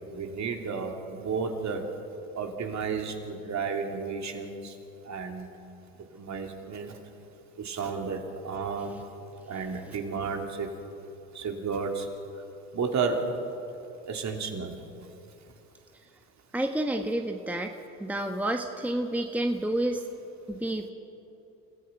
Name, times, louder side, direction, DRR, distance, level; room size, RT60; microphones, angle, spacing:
voice 1, 0.1-1.9 2.3-4.7 5.1-5.5 6.1-7.0 7.6-9.0 9.5-10.7 11.3-12.1 12.7-13.3 14.1-14.8, right 5 dB, 40° right, 3 dB, 3.1 m, -32 dB
voice 2, 16.5-20.0 20.5-20.9, right 1 dB, 5° right, 4 dB, 1.3 m, -30 dB
29.0 x 15.0 x 5.9 m, 2.8 s
hypercardioid pair, 70°, 41 cm